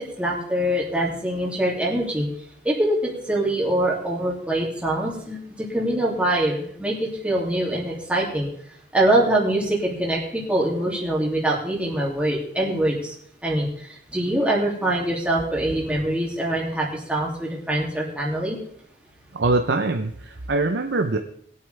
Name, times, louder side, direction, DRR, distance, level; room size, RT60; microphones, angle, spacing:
voice 1, 0.2-2.3 2.6-8.5 8.9-13.1 13.4-18.6, right 1 dB, 5° right, -4 dB, 2.8 m, -24 dB
voice 2, 19.3-21.2, right 3 dB, 90° right, 4 dB, 0.7 m, -23 dB
20.5 x 8.5 x 3.4 m, 0.64 s
head